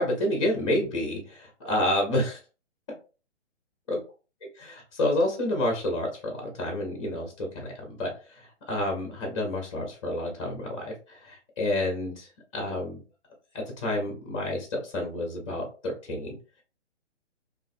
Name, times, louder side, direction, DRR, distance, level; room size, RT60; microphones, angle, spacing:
voice 1, 0.0-2.4 3.9-4.0 4.6-8.1 8.7-12.3 12.5-13.0 13.5-16.3, left 1 dB, 25° left, 1 dB, 0.6 m, -29 dB
2.5 x 2.4 x 2.4 m, 0.34 s
figure-of-eight pair, 130°, 35 cm